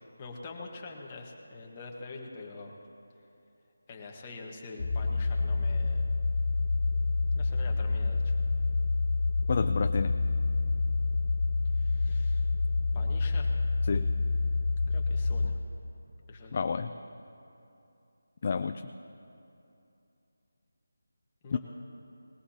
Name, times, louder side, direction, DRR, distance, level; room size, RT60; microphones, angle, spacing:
voice 1, 0.0-2.7 3.9-6.1 7.3-8.3 11.7-12.5 12.9-13.5 14.9-15.6 16.3-16.6 21.4-21.6, left 3 dB, 25° left, 0 dB, 1.4 m, -45 dB
sound 1, 4.8-15.5, left 3 dB, 70° left, 1.8 m, -28 dB
voice 2, 9.5-10.2 13.9-14.1 16.5-16.9 18.4-18.8 21.5-21.6, left 5 dB, 40° left, 8 dB, 0.4 m, -29 dB
20.0 x 15.5 x 2.9 m, 2.7 s
figure-of-eight pair, 170°, 0 cm